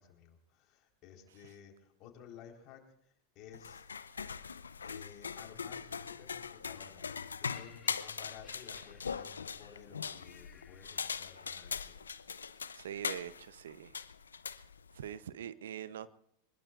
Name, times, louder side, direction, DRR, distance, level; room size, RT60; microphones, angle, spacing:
voice 1, 0.0-3.8 4.8-12.0, left 8 dB, 45° left, 2 dB, 4.3 m, -55 dB
sound 1, 3.5-15.2, left 6 dB, 85° left, 0.7 m, -41 dB
Laughter, 7.5-11.8 12.6-12.7, left 7 dB, 30° left, 2.3 m, -62 dB
voice 2, 12.7-14.0 14.9-16.1, right 10 dB, 70° right, 15 dB, 0.8 m, -43 dB
24.5 x 21.0 x 2.5 m, 0.75 s
hypercardioid pair, 90°, 0 cm